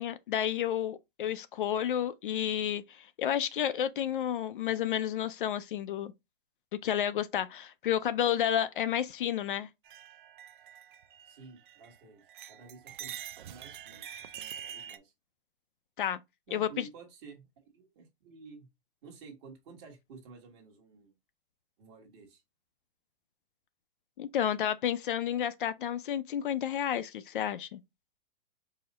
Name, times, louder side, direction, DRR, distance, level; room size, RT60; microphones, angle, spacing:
voice 1, 0.0-6.1 6.8-9.7 16.0-16.2 16.5-16.9 24.2-27.8, left 10 dB, 60° left, 0.4 m, -31 dB
sound 1, 9.8-12.0 12.3-15.0, right 10 dB, 60° right, 0.4 m, -45 dB
voice 2, 11.2-12.2 12.5-13.1 13.5-15.1 16.5-18.7 19.0-21.1 21.8-22.4, right 5 dB, 30° right, 1.3 m, -52 dB
4.7 x 2.1 x 4.0 m
hypercardioid pair, 170°, 29 cm